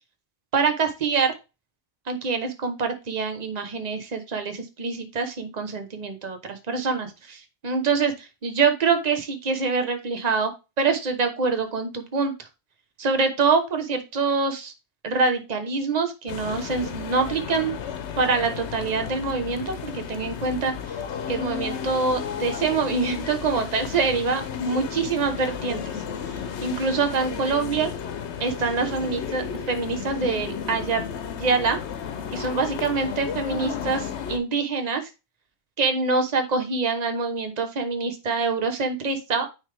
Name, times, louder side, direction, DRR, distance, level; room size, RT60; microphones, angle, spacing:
voice 1, 0.5-1.3 2.1-10.5 10.8-12.5 13.0-14.7 15.0-17.7 18.2-20.7 21.3-27.9 28.4-31.0 31.4-31.8 32.3-35.1 35.8-39.5, right 4 dB, 40° right, 6 dB, 1.0 m, -25 dB
sound 1, 16.3-34.4, left 7 dB, 75° left, 1.0 m, -33 dB
9.1 x 3.4 x 3.3 m, 0.27 s
omnidirectional pair, 1.2 m